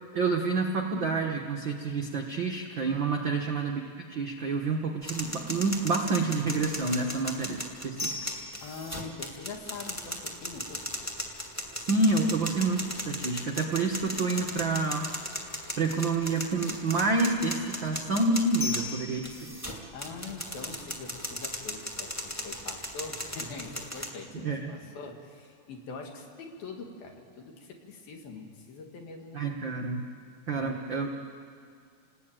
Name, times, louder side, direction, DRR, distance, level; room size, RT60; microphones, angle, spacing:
voice 1, 0.1-3.8 4.1-8.2 11.7-15.1 15.8-19.5 24.3-24.7 29.3-30.0 30.5-31.1, right 3 dB, 75° right, 1 dB, 1.0 m, -28 dB
voice 2, 3.2-3.5 8.6-10.8 19.9-29.7 30.5-30.9, left 4 dB, 70° left, 2 dB, 4.2 m, -43 dB
sound 1, 5.0-24.1, equal, 10° left, 1.0 m, -37 dB
29.5 x 19.5 x 9.0 m, 2.3 s
omnidirectional pair, 4.4 m